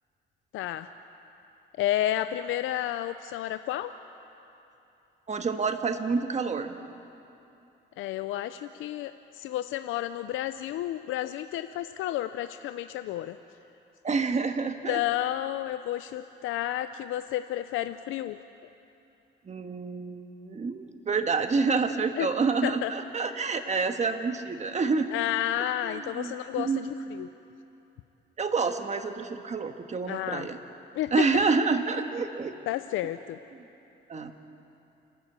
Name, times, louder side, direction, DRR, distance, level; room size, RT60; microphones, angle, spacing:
voice 1, 0.5-0.9 1.8-3.9 8.0-13.4 14.9-18.4 22.2-22.3 22.6-22.9 25.1-27.3 30.1-30.5 30.9-31.1 32.7-33.4, left 13 dB, 90° left, 11 dB, 0.5 m, -31 dB
voice 2, 5.3-6.8 14.0-15.0 19.5-25.1 25.8-26.9 28.4-30.6 31.1-32.5 34.1-34.3, right 4 dB, 35° right, 7 dB, 1.5 m, -28 dB
28.5 x 12.5 x 8.3 m, 2.8 s
cardioid pair, 90°, 20 cm